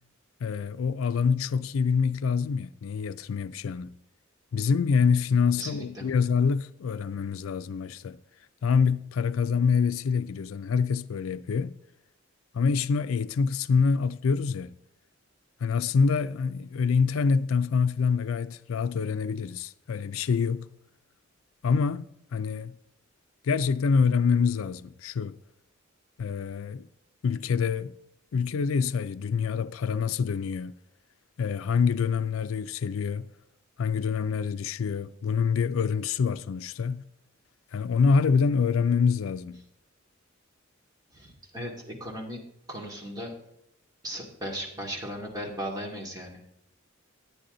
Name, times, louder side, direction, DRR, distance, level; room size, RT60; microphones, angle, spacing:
voice 1, 0.4-3.9 4.5-8.2 8.6-11.8 12.5-14.7 15.6-20.7 21.6-22.1 22.3-22.8 23.4-25.4 26.2-26.9 27.2-27.9 28.3-30.7 31.4-33.3 33.8-37.0 37.7-39.6, left 5 dB, 85° left, 0.4 m, -26 dB
voice 2, 5.6-6.1 41.1-42.4 42.7-43.3 44.0-46.5, equal, 20° right, 2.3 m, -37 dB
10.0 x 9.9 x 3.8 m
head